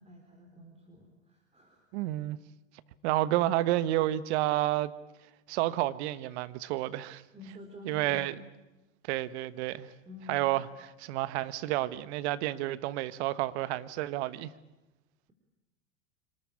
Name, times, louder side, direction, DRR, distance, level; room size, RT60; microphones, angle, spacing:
voice 1, 0.0-1.8 7.3-8.3 10.1-10.6, left 2 dB, 15° right, 3.8 m, -49 dB
voice 2, 1.9-2.4 3.0-4.9 5.5-7.2 7.8-8.3 9.1-9.9 10.3-10.7 11.0-14.5, right 15 dB, 60° right, 1.3 m, -30 dB
26.0 x 19.5 x 8.6 m
hypercardioid pair, 95°, 38 cm